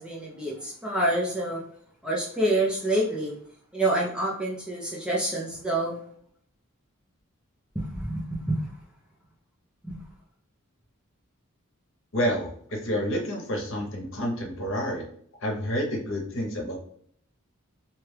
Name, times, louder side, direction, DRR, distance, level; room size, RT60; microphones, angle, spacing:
voice 1, 0.0-1.6 2.0-3.3 3.7-6.0 7.7-8.6 9.8-10.0, right 1 dB, 5° right, -4 dB, 0.5 m, -27 dB
voice 2, 12.1-15.0 15.4-16.7, equal, 65° left, 0 dB, 0.9 m, -29 dB
2.8 x 2.3 x 3.2 m, 0.62 s
head